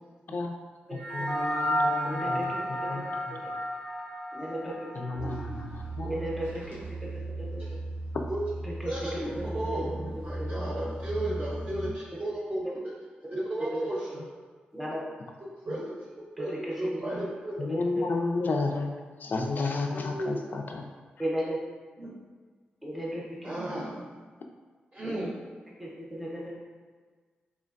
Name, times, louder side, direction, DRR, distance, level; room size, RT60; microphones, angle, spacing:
voice 1, 0.9-3.3 4.9-6.2 17.6-18.9 19.2-20.9, left 3 dB, 60° left, 3 dB, 0.3 m, -32 dB
sound 1, 0.9-5.6, equal, 85° right, 1.1 m, -32 dB
voice 2, 2.0-3.0 4.3-4.7 6.0-6.8 7.4-7.5 8.6-9.8 10.3-10.5 12.6-12.7 13.7-13.8 14.7-15.0 16.4-17.1 17.7-17.8 21.2-21.6 22.8-23.5 25.0-25.1 25.8-26.4, equal, ahead, -5 dB, 0.7 m, -35 dB
voice 3, 5.2-5.7 7.6-7.7 8.3-8.4 8.8-12.9 13.3-14.2 15.4-15.9 16.4-16.5 16.8-17.5 19.9-20.4 22.0-22.1 23.4-24.2 24.9-25.3, right 1 dB, 35° right, -6 dB, 0.7 m, -34 dB
sound 2, 5.2-11.9, right 2 dB, 70° right, 0.7 m, -37 dB
3.1 x 2.2 x 2.5 m, 1.5 s
cardioid pair, 60°, 4 cm